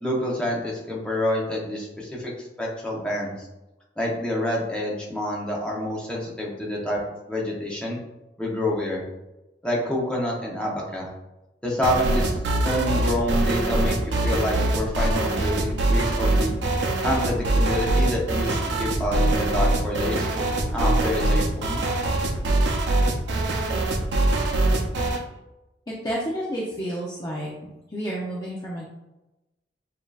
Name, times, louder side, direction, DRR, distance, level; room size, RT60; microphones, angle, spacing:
voice 1, 0.0-2.3 2.6-3.5 4.0-7.0 7.3-8.0 8.4-9.0 9.6-11.1 11.6-12.4 12.6-16.5 17.0-20.3 20.7-21.8, left 1 dB, 5° left, -4 dB, 0.9 m, -27 dB
sound 1, 11.8-25.2, right 2 dB, 80° right, 0.6 m, -23 dB
voice 2, 26.0-27.5 27.9-28.9, equal, 20° left, -5 dB, 0.6 m, -30 dB
6.9 x 2.7 x 2.4 m, 0.97 s
head